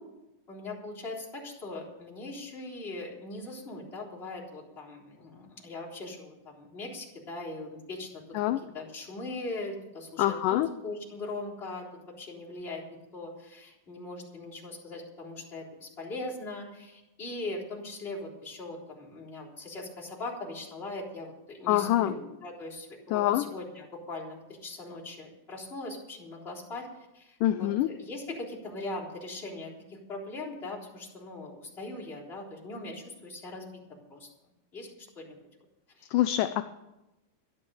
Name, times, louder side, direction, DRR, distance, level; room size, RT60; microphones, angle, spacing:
voice 1, 0.5-8.1 8.7-11.9 12.2-12.8 13.1-33.7 34.1-34.3 34.7-35.4 35.9-36.1, left 2 dB, 15° left, -5 dB, 3.7 m, -40 dB
voice 2, 10.2-10.7 21.7-22.1 23.1-23.5 27.4-27.9 36.1-36.6, left 14 dB, 80° left, 10 dB, 2.0 m, -25 dB
13.0 x 11.5 x 7.1 m, 0.96 s
omnidirectional pair, 4.1 m